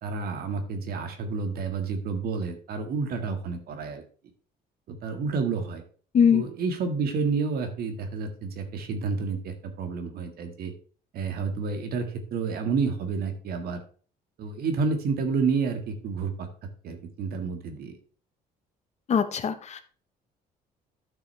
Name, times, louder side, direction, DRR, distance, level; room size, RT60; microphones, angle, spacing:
voice 1, 0.0-4.0 4.9-5.8 6.3-10.7 11.1-13.8 14.4-16.5 16.8-18.0, right 4 dB, 65° right, 6 dB, 1.7 m, -30 dB
voice 2, 19.1-19.8, left 7 dB, 40° left, 10 dB, 1.0 m, -21 dB
11.0 x 6.1 x 3.3 m, 0.42 s
cardioid pair, 110°, 17 cm